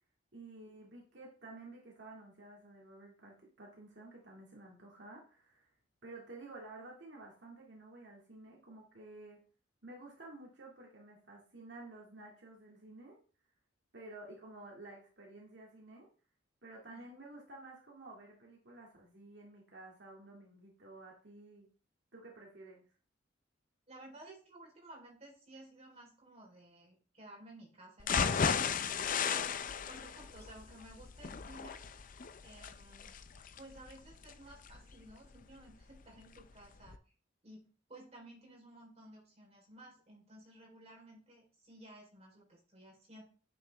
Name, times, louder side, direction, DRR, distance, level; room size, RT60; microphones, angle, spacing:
voice 1, 0.3-5.7 6.0-9.4 9.8-13.2 13.9-16.1 16.6-21.7 22.1-22.8, right 2 dB, 70° right, -2 dB, 2.2 m, -52 dB
voice 2, 23.9-29.4 29.9-31.8 32.4-33.1 33.6-37.0 37.4-43.2, right 1 dB, 35° right, -2 dB, 3.8 m, -55 dB
sound 1, 28.0-36.0 36.4-36.5 36.9-37.0, left 6 dB, 45° left, 0.5 m, -35 dB
9.0 x 6.9 x 3.4 m, 0.39 s
head